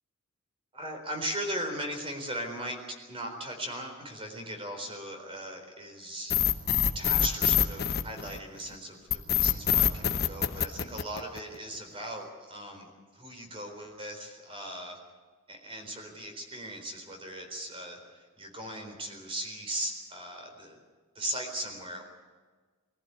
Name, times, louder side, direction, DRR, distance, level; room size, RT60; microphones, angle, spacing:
voice 1, 0.7-2.8 3.1-6.3 6.9-15.0 15.5-20.8 21.1-22.0, right 1 dB, 25° right, 4 dB, 4.1 m, -38 dB
sound 1, 6.3-8.6 9.1-11.5, left 9 dB, 50° left, 1.0 m, -25 dB
23.0 x 15.0 x 9.7 m, 1.4 s
head